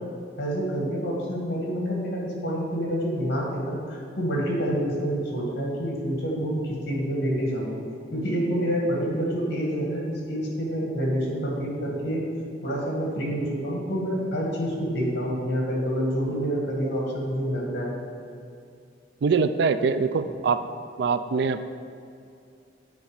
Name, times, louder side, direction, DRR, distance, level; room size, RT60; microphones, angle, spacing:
voice 1, 0.4-7.8 8.1-12.2 12.6-18.0, equal, 55° left, -2 dB, 2.0 m, -27 dB
voice 2, 19.2-20.6 21.0-21.7, right 5 dB, 60° right, 11 dB, 0.4 m, -23 dB
9.6 x 4.4 x 5.2 m, 2.4 s
head